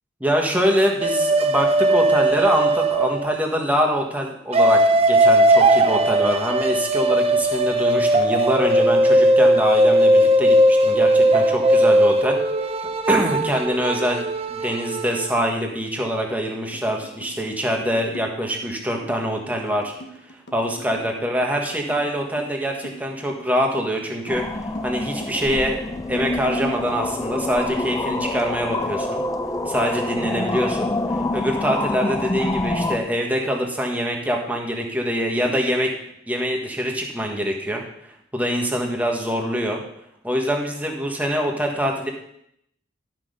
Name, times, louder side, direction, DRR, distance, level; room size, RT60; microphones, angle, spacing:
voice 1, 0.2-12.4 13.1-19.9 20.3-25.8 26.1-29.2 29.7-35.9 36.3-39.8 40.2-42.1, equal, 10° right, 1 dB, 1.5 m, -24 dB
sound 1, 1.0-3.5 4.5-15.3, right 1 dB, 30° right, 0.6 m, -18 dB
sound 2, 16.7-27.2, right 1 dB, 65° left, 1.2 m, -42 dB
sound 3, 24.3-33.0, left 2 dB, 20° left, 0.5 m, -26 dB
12.0 x 6.1 x 5.2 m, 0.75 s
head